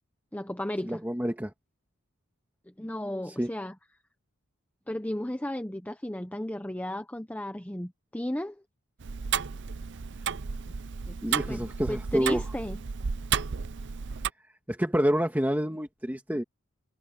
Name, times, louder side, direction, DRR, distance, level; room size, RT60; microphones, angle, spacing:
voice 1, 0.3-1.0 2.7-3.8 4.9-8.6 11.1-12.8, left 1 dB, 5° left, 0.8 m, -34 dB
voice 2, 0.9-1.5 3.4-3.5 11.2-12.4 14.7-16.4, equal, 10° right, 1.9 m, -28 dB
Tick-tock, 9.0-14.3, right 7 dB, 55° right, 0.6 m, -33 dB
head